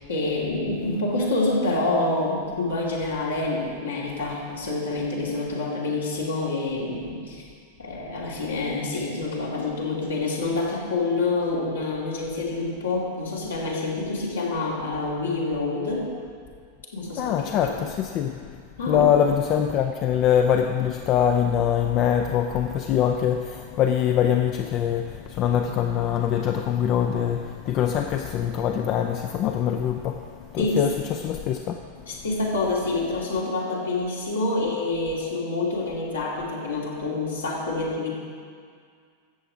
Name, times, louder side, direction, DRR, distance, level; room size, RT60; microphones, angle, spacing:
voice 1, 0.1-7.4 7.8-16.1 16.9-17.9 18.8-19.2 30.6-30.8 32.1-38.2, left 2 dB, 70° left, -4 dB, 2.6 m, -27 dB
voice 2, 17.2-18.6 18.9-31.8, left 9 dB, 35° left, 5 dB, 0.5 m, -23 dB
13.5 x 7.9 x 4.9 m, 2.1 s
figure-of-eight pair, 90°, 0 cm